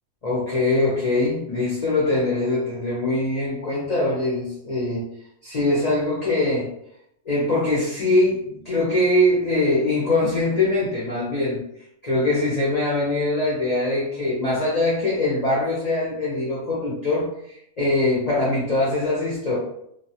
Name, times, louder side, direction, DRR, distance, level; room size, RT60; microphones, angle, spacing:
voice 1, 0.2-5.0 5.4-6.7 7.3-11.6 12.0-19.6, left 2 dB, 50° left, -6 dB, 0.5 m, -22 dB
2.3 x 2.3 x 2.7 m, 0.74 s
omnidirectional pair, 1.5 m